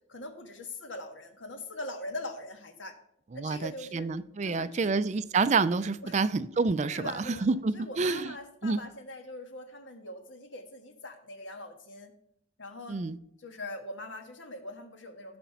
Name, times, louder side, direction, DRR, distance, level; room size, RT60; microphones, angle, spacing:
voice 1, 0.1-2.9 3.3-4.1 4.4-5.0 6.0-6.2 6.9-7.5 7.7-12.1 12.6-13.1 13.4-15.4, left 2 dB, 75° left, 6 dB, 1.6 m, -42 dB
voice 2, 3.3-8.3 8.6-8.9 12.9-13.2, right 4 dB, 35° right, 15 dB, 0.4 m, -28 dB
15.5 x 5.2 x 5.8 m, 0.75 s
head